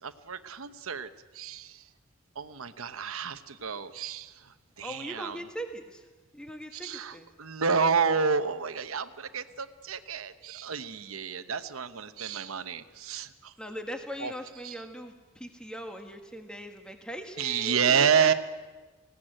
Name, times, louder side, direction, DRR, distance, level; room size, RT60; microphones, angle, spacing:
voice 1, 0.0-1.9 2.3-5.5 6.7-13.5 14.2-14.3 14.6-14.8 17.4-18.3, right 6 dB, 90° right, 10 dB, 0.9 m, -30 dB
voice 2, 4.8-6.1 6.3-7.3 13.6-18.3, equal, 5° left, 4 dB, 1.5 m, -40 dB
21.0 x 17.0 x 9.0 m, 1.3 s
head